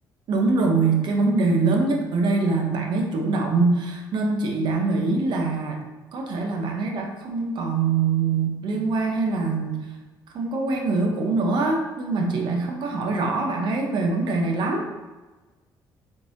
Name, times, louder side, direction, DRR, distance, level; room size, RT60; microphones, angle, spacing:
voice 1, 0.3-5.8 6.1-9.9 10.3-14.9, right 3 dB, 65° right, 1 dB, 0.7 m, -23 dB
3.7 x 3.1 x 2.6 m, 1.2 s
cardioid pair, 95°, 8 cm